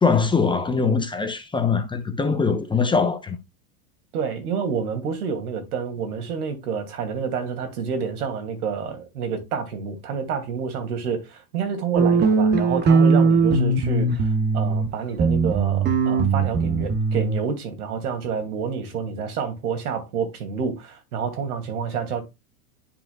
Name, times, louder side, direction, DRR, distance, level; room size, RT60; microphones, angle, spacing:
voice 1, 0.0-3.4, left 5 dB, 10° left, 0.8 m, -22 dB
voice 2, 4.1-22.2, right 6 dB, 80° right, 2.7 m, -28 dB
sound 1, 12.0-14.9 15.2-17.4, right 4 dB, 20° right, 1.0 m, -19 dB
10.0 x 5.2 x 2.4 m
supercardioid pair, 125°, 44 cm